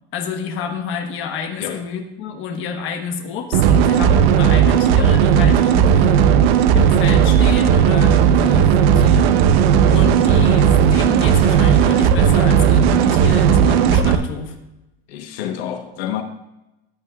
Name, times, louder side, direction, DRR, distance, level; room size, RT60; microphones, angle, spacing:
voice 1, 0.1-9.6 9.9-14.6, left 6 dB, 40° left, 1.3 m, -28 dB
sound 1, 3.5-14.2, right 8 dB, 80° right, 0.8 m, -14 dB
voice 2, 15.1-16.2, left 10 dB, 85° left, 1.1 m, -28 dB
14.5 x 8.3 x 2.4 m
cardioid pair, 165°, 31 cm